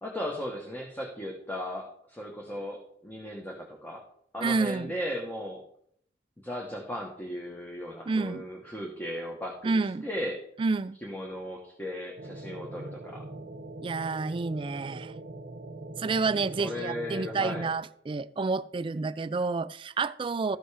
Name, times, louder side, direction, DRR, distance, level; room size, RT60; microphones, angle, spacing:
voice 1, 0.0-4.0 4.3-5.6 6.4-10.4 11.0-13.2 16.4-17.7, equal, 10° left, -1 dB, 1.2 m, -36 dB
voice 2, 4.4-4.9 8.1-8.4 9.6-10.0 10.6-11.0 13.8-15.1 16.0-20.6, right 4 dB, 30° right, 16 dB, 0.3 m, -29 dB
sound 1, 12.2-17.7, right 2 dB, 55° right, 0.6 m, -42 dB
13.5 x 5.3 x 4.9 m, 0.68 s
head